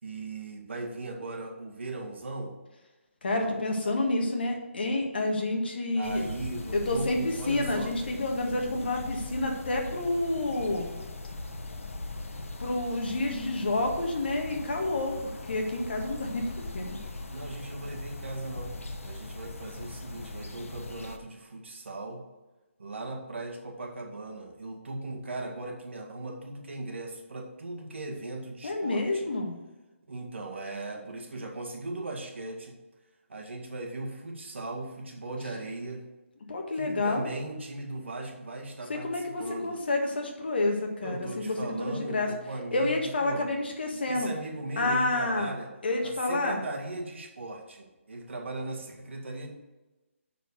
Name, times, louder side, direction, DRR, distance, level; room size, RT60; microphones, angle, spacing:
voice 1, 0.0-2.6 3.3-3.7 5.9-7.9 17.3-22.2 22.8-29.3 30.1-32.7 33.3-36.0 36.8-39.8 41.0-43.5 44.1-45.7 46.0-49.5, right 2 dB, 60° right, 0 dB, 2.0 m, -38 dB
voice 2, 3.2-6.2 6.7-10.9 12.6-16.5 16.7-17.0 28.6-29.6 36.5-37.3 38.9-41.3 41.6-42.3 42.7-44.3 44.8-45.5 45.8-46.6, left 2 dB, 45° left, 1 dB, 1.7 m, -29 dB
sound 1, 6.0-21.2, left 2 dB, 85° left, 1.1 m, -40 dB
6.7 x 6.4 x 6.4 m, 1.1 s
hypercardioid pair, 175°, 7 cm